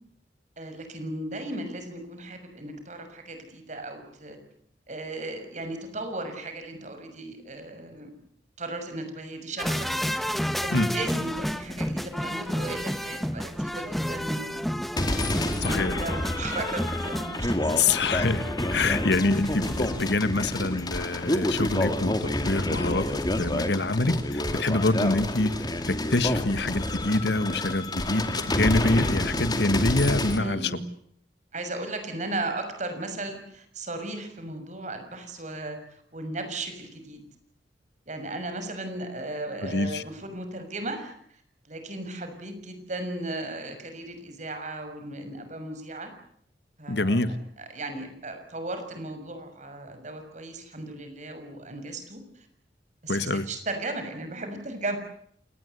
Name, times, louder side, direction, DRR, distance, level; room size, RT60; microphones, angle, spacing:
voice 1, 0.6-4.4 4.9-8.1 8.6-10.2 10.6-14.7 15.3-18.1 30.4-30.8 31.5-37.2 38.1-41.1 41.7-46.1 46.8-52.5 53.0-55.0, right 2 dB, 45° right, 7 dB, 6.5 m, -36 dB
sound 1, 9.6-20.8 21.1-21.2, equal, ahead, 1.1 m, -31 dB
sound 2, 15.0-30.4, left 1 dB, 25° left, 2.5 m, -29 dB
voice 2, 15.6-16.0 17.7-25.5 25.9-30.7 39.6-40.0 46.9-47.3 53.1-53.5, left 2 dB, 75° left, 13 dB, 1.7 m, -26 dB
28.5 x 19.5 x 8.3 m, 0.66 s
head